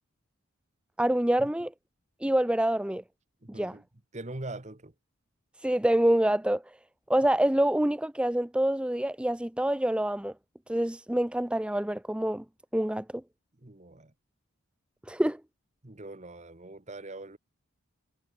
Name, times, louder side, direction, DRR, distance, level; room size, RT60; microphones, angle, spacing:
voice 1, 1.0-1.7 2.2-3.0 3.6-3.7 5.6-6.6 7.1-10.3 10.7-12.4 12.7-13.0 15.1-15.4, right 1 dB, 5° right, 0.4 m, -26 dB
voice 2, 3.4-3.8 4.1-4.9 13.6-14.1 15.8-17.4, right 2 dB, 30° right, 1.4 m, -42 dB
head